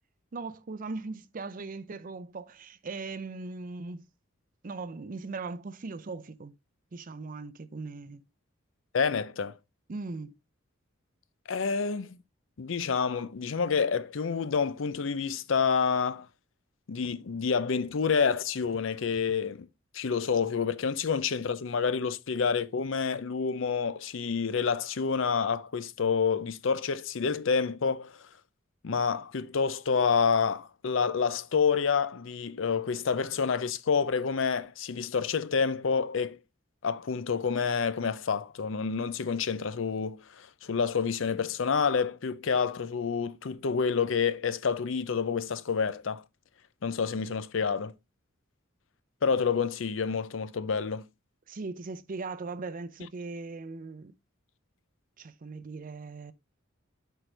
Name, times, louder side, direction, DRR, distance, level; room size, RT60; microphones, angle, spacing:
voice 1, 0.3-4.1 4.6-6.5 6.9-8.2 9.9-10.3 51.5-54.1 55.2-56.3, right 3 dB, 40° right, 0.5 m, -39 dB
voice 2, 8.9-9.5 11.5-12.2 12.6-16.3 16.9-19.7 19.9-28.2 28.8-36.4 36.8-46.2 46.8-47.9 49.2-51.0, left 5 dB, 65° left, 0.5 m, -28 dB
7.9 x 4.6 x 3.2 m
head